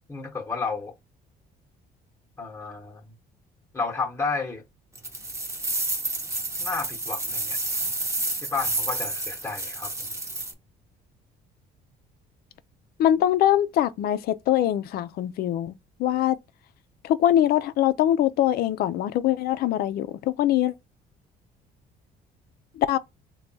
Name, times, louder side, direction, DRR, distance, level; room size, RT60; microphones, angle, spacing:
voice 1, 0.1-0.9 2.4-3.1 3.7-4.6 6.6-7.6 8.4-9.9, left 4 dB, 15° left, 0.9 m, -31 dB
sound 1, 5.0-10.5, right 2 dB, 15° right, 0.8 m, -30 dB
voice 2, 13.0-15.7 16.0-16.4 17.0-20.7 22.8-23.0, left 12 dB, 65° left, 0.5 m, -23 dB
3.4 x 2.3 x 3.9 m
cardioid pair, 110°, 17 cm